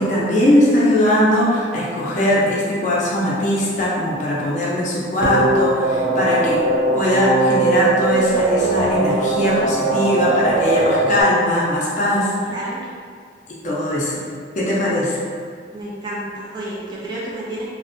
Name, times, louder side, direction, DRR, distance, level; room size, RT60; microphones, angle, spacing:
voice 1, 0.0-6.6 7.0-12.3 13.6-14.2 14.6-15.2, left 1 dB, 40° left, -6 dB, 0.5 m, -19 dB
sound 1, 5.2-11.2, right 2 dB, 85° right, 0.5 m, -20 dB
voice 2, 12.5-12.8 15.7-17.7, right 1 dB, 25° right, -7 dB, 0.5 m, -30 dB
2.5 x 2.1 x 2.5 m, 2.1 s
head